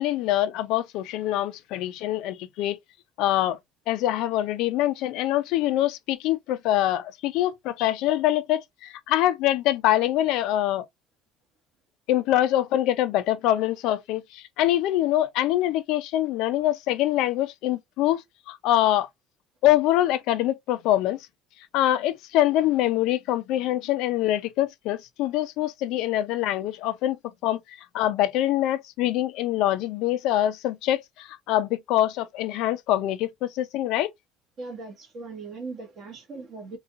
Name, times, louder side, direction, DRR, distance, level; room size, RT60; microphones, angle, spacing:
voice 1, 0.0-2.8 3.2-3.6 3.9-10.9 12.1-18.2 18.5-19.1 19.6-21.2 21.7-27.2 27.4-34.1, left 13 dB, 65° left, 0.5 m, -24 dB
voice 2, 34.6-36.8, right 3 dB, 40° right, 1.4 m, -39 dB
3.8 x 2.4 x 2.4 m
cardioid pair, 150°, 0 cm